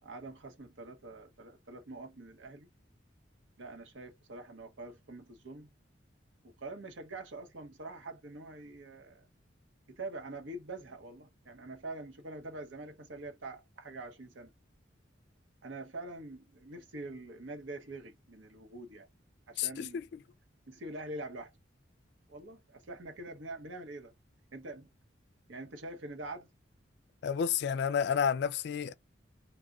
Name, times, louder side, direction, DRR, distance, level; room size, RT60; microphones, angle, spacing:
voice 1, 0.0-2.7 3.6-5.7 6.4-9.3 9.9-14.5 15.6-19.1 19.5-20.0 20.7-21.6 22.3-24.1 24.5-24.9 25.5-26.5, right 2 dB, 80° right, 0.8 m, -45 dB
voice 2, 19.6-20.0 27.2-28.9, left 7 dB, 60° left, 0.3 m, -30 dB
2.3 x 2.1 x 3.7 m
head